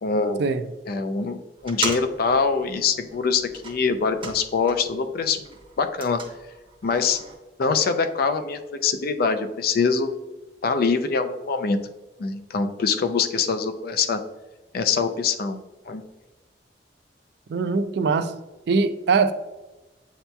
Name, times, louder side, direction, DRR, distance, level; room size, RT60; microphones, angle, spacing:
voice 1, 0.0-0.4 0.9-1.4 1.6-5.5 5.8-6.2 6.8-7.2 7.6-10.1 10.6-11.8 12.2-14.2 14.7-15.6 15.9-16.0, left 5 dB, 60° left, 0.4 m, -24 dB
sound 1, 1.6-5.0 5.3-7.3, right 3 dB, 30° right, 0.7 m, -37 dB
voice 2, 17.5-18.4 18.7-19.3, right 4 dB, 70° right, 0.3 m, -22 dB
7.9 x 2.8 x 2.2 m
head